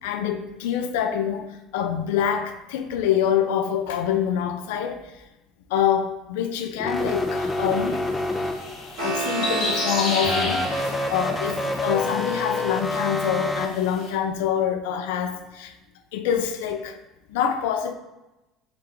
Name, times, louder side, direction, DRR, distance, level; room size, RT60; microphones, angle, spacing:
voice 1, 0.0-5.0 5.7-8.0 9.0-15.7 16.1-17.0 17.3-17.9, left 9 dB, 85° left, 0.3 m, -25 dB
sound 1, 6.8-9.0 10.2-13.7, left 2 dB, 15° left, 0.4 m, -27 dB
sound 2, 6.9-14.1, left 3 dB, 70° left, 1.3 m, -34 dB
sound 3, 8.6-13.6, right 4 dB, 85° right, 1.2 m, -33 dB
3.7 x 2.9 x 3.3 m
supercardioid pair, 95°, 0 cm